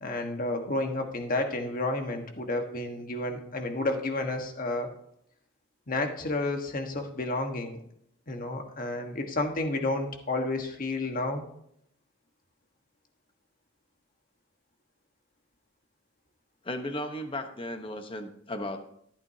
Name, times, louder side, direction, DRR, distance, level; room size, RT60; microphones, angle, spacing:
voice 1, 0.0-4.9 5.9-7.8 8.3-11.4, left 2 dB, 45° left, 4 dB, 1.4 m, -31 dB
voice 2, 16.6-18.8, left 1 dB, 25° left, 7 dB, 1.0 m, -35 dB
14.0 x 8.9 x 2.8 m, 0.72 s
head